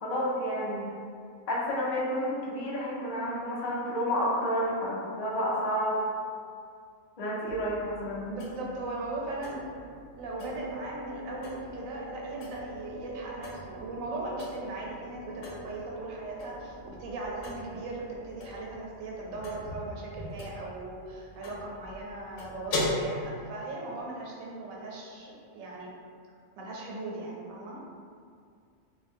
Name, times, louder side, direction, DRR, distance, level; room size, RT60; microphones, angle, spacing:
voice 1, 0.0-0.9 1.5-6.0 7.2-8.3, equal, 55° left, -6 dB, 0.4 m, -30 dB
sound 1, 7.5-22.9, left 1 dB, 70° left, 0.9 m, -42 dB
voice 2, 8.3-9.6 10.1-25.9 26.6-27.8, right 2 dB, 85° right, -3 dB, 1.0 m, -38 dB
sound 2, 10.4-16.9, equal, 60° right, 0.7 m, -45 dB
2.4 x 2.2 x 3.4 m, 2.2 s
omnidirectional pair, 1.4 m